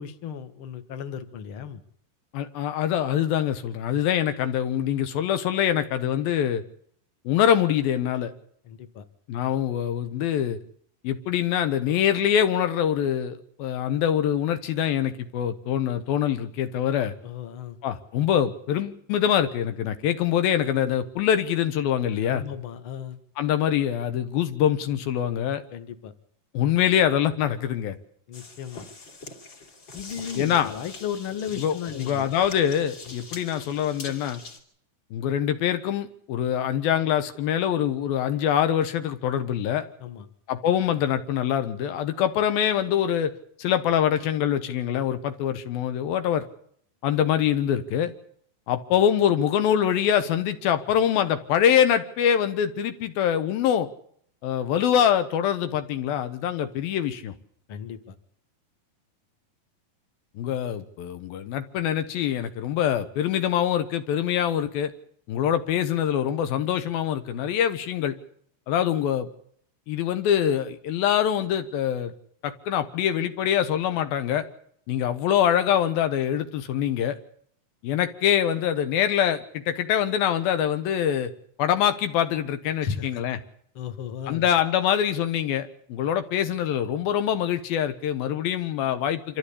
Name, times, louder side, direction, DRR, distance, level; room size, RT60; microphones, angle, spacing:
voice 1, 0.0-1.8 8.7-9.0 17.2-17.8 22.2-23.2 25.7-26.1 28.3-28.9 29.9-32.3 33.1-33.2 40.0-40.3 57.7-58.2 82.8-83.2 83.8-84.5, left 8 dB, 50° left, 9 dB, 1.9 m, -35 dB
voice 2, 2.3-6.6 7.2-8.3 9.3-10.6 11.0-17.1 17.8-22.4 23.4-25.6 26.5-28.0 30.4-30.8 31.6-34.4 35.1-39.9 40.5-46.5 47.0-48.1 48.7-53.9 54.4-57.3 60.4-64.9 65.3-68.2 68.7-69.3 69.9-72.1 72.4-74.5 74.9-77.2 77.8-81.3 81.6-83.4 84.3-89.4, left 9 dB, 85° left, 10 dB, 3.1 m, -24 dB
sound 1, 28.3-34.6, left 3 dB, 30° left, 3.2 m, -43 dB
26.5 x 13.5 x 8.6 m, 0.65 s
omnidirectional pair, 4.2 m